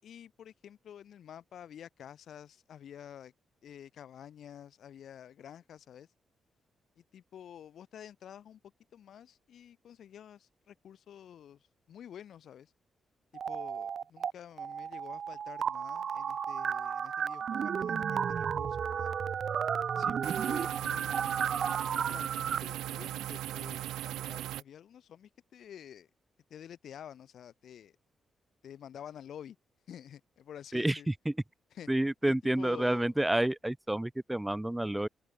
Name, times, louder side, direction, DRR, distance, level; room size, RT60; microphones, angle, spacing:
voice 1, 0.0-3.3 3.6-6.1 7.0-8.6 8.9-12.7 13.5-19.1 20.0-21.4 21.9-26.1 26.5-28.0 28.6-29.6 29.9-31.1 31.7-31.9 32.2-33.1, left 9 dB, 70° left, 6.2 m, -50 dB
sound 1, 13.3-14.3 14.6-22.6, right 7 dB, 60° right, 0.9 m, -33 dB
sound 2, 20.2-24.6, right 14 dB, 80° right, 1.7 m, -38 dB
voice 2, 30.7-31.4 31.9-35.1, right 1 dB, 10° right, 2.2 m, -29 dB
open air
supercardioid pair, 50°, 0 cm